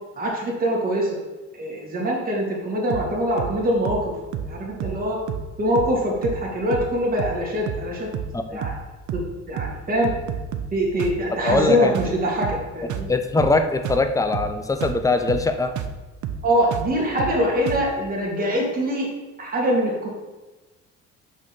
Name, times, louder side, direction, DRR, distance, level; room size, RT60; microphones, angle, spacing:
voice 1, 0.2-1.2 1.5-4.2 4.5-5.2 5.6-8.7 9.1-9.2 9.5-10.1 10.7-13.1 16.4-19.1 19.4-20.1, equal, 30° right, -3 dB, 2.2 m, -23 dB
sound 1, 2.9-3.1 3.4-3.6 3.8-4.1 4.3-4.5 4.8-5.0 5.3-5.5 5.7-6.0 6.2-6.4 6.7-6.9 7.2-7.4 7.7-7.9 8.1-8.4 8.6-8.8 9.1-9.3 9.6-9.8 10.0-10.7 11.0-11.2 11.5-11.7 11.9-12.2 12.4-12.6 12.9-13.1 13.4-13.6 13.8-14.1 14.3-14.5 14.8-15.0 15.3-15.5 15.8-16.0 16.2-16.4 16.7-16.9 17.2-17.4 17.7-17.9, right 8 dB, 70° right, 0.7 m, -30 dB
voice 2, 11.4-12.0 13.1-15.7, left 3 dB, 10° left, 8 dB, 0.5 m, -22 dB
6.2 x 5.9 x 4.3 m, 1.2 s
cardioid pair, 130°, 31 cm